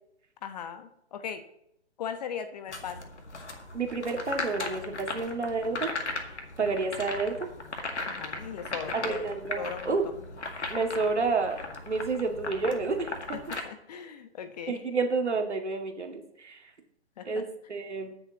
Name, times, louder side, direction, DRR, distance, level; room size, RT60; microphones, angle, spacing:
voice 1, 0.4-1.4 2.0-3.1 8.0-9.3 9.5-10.0 13.6-14.8 17.2-17.4, left 7 dB, 35° left, 8 dB, 1.2 m, -38 dB
sound 1, 2.7-13.6, left 3 dB, 80° left, 2.1 m, -37 dB
voice 2, 3.7-5.9 6.2-7.5 8.9-10.0 10.7-11.6 11.9-13.1 14.7-16.6 17.3-18.1, right 4 dB, 80° right, 2 dB, 2.4 m, -30 dB
21.0 x 7.2 x 3.0 m, 0.79 s
figure-of-eight pair, 140°, 34 cm